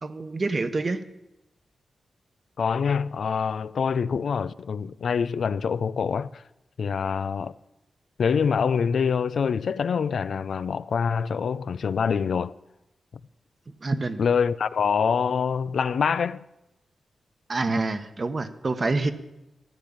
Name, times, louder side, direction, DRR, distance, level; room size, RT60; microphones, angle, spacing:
voice 1, 0.0-1.0 13.8-14.2 17.5-19.1, right 3 dB, 40° right, 1.1 m, -27 dB
voice 2, 2.6-6.4 6.8-7.5 8.2-12.5 14.2-16.4, left 6 dB, 70° left, 0.4 m, -25 dB
13.5 x 9.9 x 8.7 m
cardioid pair, 80°, 0 cm